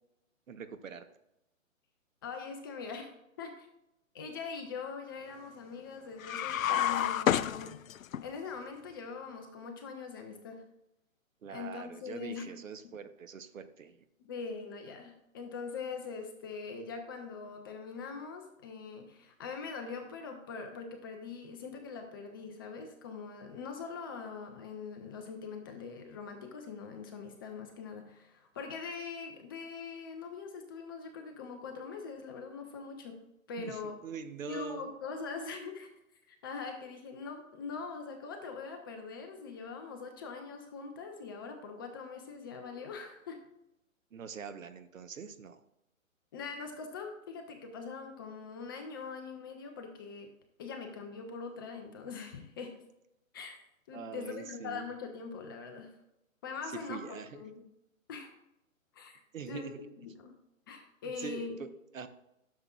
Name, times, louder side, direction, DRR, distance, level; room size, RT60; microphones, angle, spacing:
voice 1, 0.5-1.1 11.4-14.1 33.6-34.9 44.1-45.6 53.9-54.9 56.7-57.4 59.3-59.9 61.0-62.1, right 6 dB, 70° right, 10 dB, 1.0 m, -44 dB
voice 2, 2.2-3.1 3.4-3.7 4.1-7.7 8.2-10.6 11.5-12.5 14.2-33.2 33.5-34.0 34.5-35.9 36.3-43.4 46.3-50.3 50.6-52.8 53.3-53.6 53.9-55.9 56.4-57.6 58.1-58.3 58.9-59.2 59.5-60.3 60.7-61.6, left 5 dB, 15° left, 4 dB, 0.5 m, -42 dB
sound 1, 6.2-8.2, left 10 dB, 75° left, 0.5 m, -29 dB
12.0 x 6.8 x 2.3 m, 0.87 s
figure-of-eight pair, 135°, 41 cm